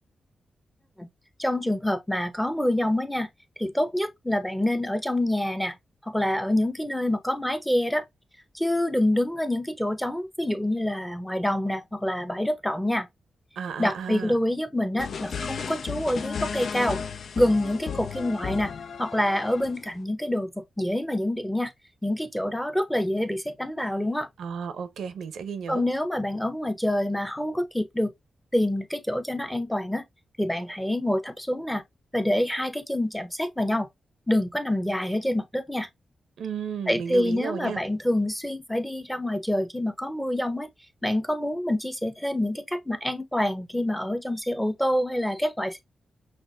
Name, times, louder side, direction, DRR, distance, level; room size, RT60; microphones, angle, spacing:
voice 1, 1.4-3.3 3.6-5.7 6.1-8.0 8.5-13.1 13.8-17.0 17.4-18.7 19.0-21.7 22.0-24.3 25.7-28.1 28.5-30.0 30.4-31.8 32.1-33.9 34.3-35.9 36.9-40.7 41.0-45.8, left 1 dB, 5° left, 0.8 m, -26 dB
voice 2, 13.6-14.4 24.4-25.9 36.4-37.8, right 7 dB, 90° right, 0.7 m, -33 dB
sound 1, 15.0-19.9, left 6 dB, 70° left, 0.5 m, -34 dB
5.9 x 2.6 x 2.5 m
cardioid pair, 75°, 0 cm